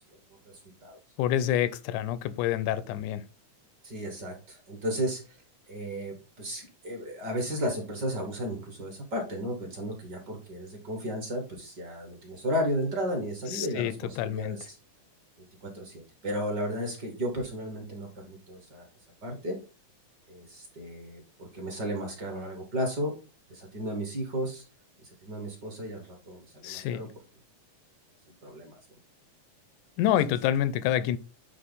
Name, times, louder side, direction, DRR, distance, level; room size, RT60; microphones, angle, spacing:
voice 1, 1.2-3.2 13.5-14.6 26.6-27.0 30.0-31.2, left 11 dB, 90° left, 2.1 m, -27 dB
voice 2, 3.8-5.2 5.7-14.6 15.7-15.9 16.2-18.9 19.2-19.6 20.3-23.1 23.5-24.6 25.2-27.1 28.4-28.7, equal, 40° right, 1.7 m, -34 dB
9.1 x 3.2 x 4.0 m
omnidirectional pair, 3.5 m